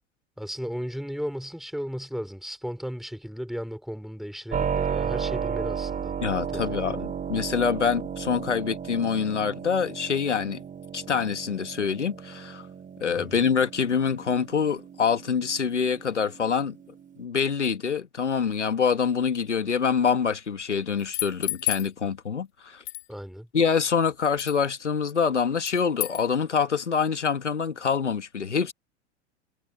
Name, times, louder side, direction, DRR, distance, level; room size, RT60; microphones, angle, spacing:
voice 1, 0.4-6.1 6.5-7.1 13.2-13.5 23.1-23.5, equal, ahead, 4.9 m, -35 dB
Keyboard (musical), 4.5-17.2, right 7 dB, 25° right, 4.5 m, -34 dB
voice 2, 6.2-10.6 10.9-12.7 13.0-16.8 17.2-22.8 23.5-28.7, left 6 dB, 90° left, 2.0 m, -25 dB
sound 1, 21.0-21.9 22.9-23.1 24.4-24.6 25.6-26.2, left 20 dB, 60° left, 3.5 m, -30 dB
hypercardioid pair, 95°, 35 cm